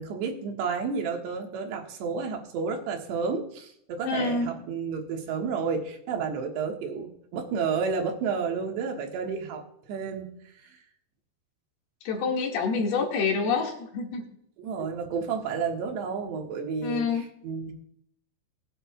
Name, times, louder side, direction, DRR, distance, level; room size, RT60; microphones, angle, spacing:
voice 1, 0.0-9.6 9.9-10.3 10.6-10.8 14.6-17.7, right 5 dB, 90° right, 2 dB, 3.7 m, -31 dB
voice 2, 4.1-4.5 12.1-14.2 14.8-14.9 16.8-17.2, left 4 dB, 70° left, 0 dB, 3.7 m, -27 dB
19.5 x 9.9 x 2.4 m, 0.71 s
omnidirectional pair, 4.8 m